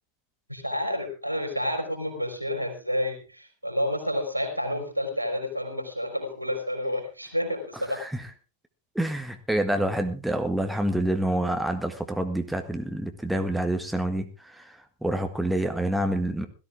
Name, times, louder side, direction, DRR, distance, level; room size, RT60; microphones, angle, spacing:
voice 1, 0.5-8.0, equal, 90° right, 6 dB, 4.1 m, -29 dB
voice 2, 7.9-8.2 9.0-16.5, right 1 dB, 5° right, 6 dB, 1.6 m, -27 dB
17.0 x 14.0 x 3.6 m, 0.32 s
figure-of-eight pair, 90°, 0 cm